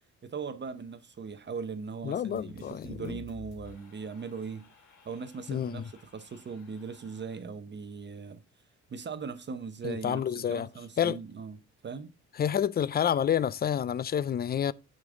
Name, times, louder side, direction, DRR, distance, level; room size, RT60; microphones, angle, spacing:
voice 1, 0.2-4.7 5.0-8.4 8.9-12.1, right 5 dB, 35° right, 0.8 m, -39 dB
voice 2, 2.0-3.2 5.5-5.8 9.8-10.7 11.0-11.2 12.4-14.7, left 9 dB, 30° left, 0.4 m, -29 dB
sound 1, 2.3-7.4, left 6 dB, 75° left, 3.2 m, -53 dB
9.6 x 5.3 x 3.7 m
cardioid pair, 90°, 30 cm